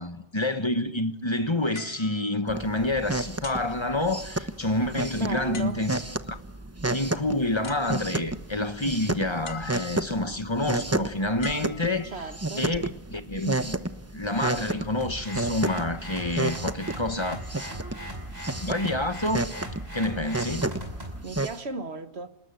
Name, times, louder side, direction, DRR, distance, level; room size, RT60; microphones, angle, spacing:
voice 1, 0.0-6.0 6.3-6.4 6.9-12.1 12.6-13.8 14.1-17.7 18.5-19.5 19.9-20.7, left 1 dB, 25° left, 1.4 m, -28 dB
sound 1, 1.7-2.9 3.4-4.6 5.5-6.2 7.3-7.4 7.6-8.5 9.4-10.2 11.4-12.5 13.2-13.5, left 4 dB, 60° left, 1.7 m, -44 dB
sound 2, 2.5-21.6, right 2 dB, 15° right, 0.9 m, -32 dB
voice 2, 5.1-5.8 12.0-12.7 17.5-18.1 21.2-22.3, right 4 dB, 70° right, 1.9 m, -37 dB
sound 3, 15.0-21.2, equal, 40° right, 5.5 m, -39 dB
28.0 x 20.0 x 9.1 m
omnidirectional pair, 1.1 m